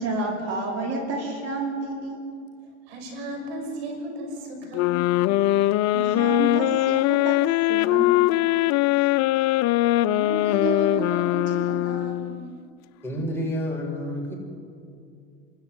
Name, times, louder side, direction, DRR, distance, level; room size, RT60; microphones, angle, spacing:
voice 1, 0.0-2.2 5.9-7.4 7.7-8.2 8.9-9.1, right 2 dB, 50° right, 0 dB, 4.9 m, -30 dB
voice 2, 2.9-5.2 9.8-12.4, right 1 dB, 85° right, 3 dB, 6.2 m, -33 dB
sound 1, 4.7-12.4, left 16 dB, 60° left, 0.7 m, -21 dB
voice 3, 13.0-14.4, equal, 10° left, -2 dB, 7.9 m, -29 dB
29.5 x 13.5 x 9.8 m, 2.4 s
supercardioid pair, 100°, 31 cm